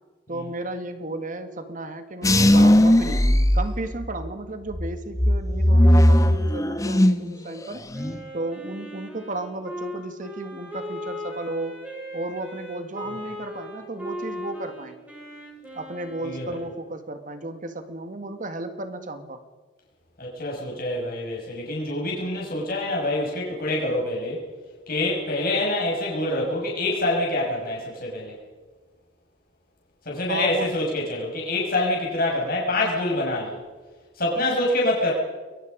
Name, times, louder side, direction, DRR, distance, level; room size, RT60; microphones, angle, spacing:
voice 1, 0.3-3.3 3.5-7.8 8.3-11.8 12.1-15.0 15.7-19.4 30.3-30.8, right 2 dB, 45° right, 8 dB, 2.0 m, -34 dB
sound 1, 2.2-4.3 4.7-7.3 7.6-8.2, left 1 dB, 20° left, 1.1 m, -18 dB
Wind instrument woodwind instrument, 7.9-16.8, equal, 10° right, 5.9 m, -38 dB
voice 2, 16.2-16.5 20.2-24.4 24.9-28.4 30.1-33.6 34.2-35.1, left 2 dB, 55° left, -2 dB, 6.1 m, -26 dB
29.0 x 22.0 x 5.3 m, 1.4 s
head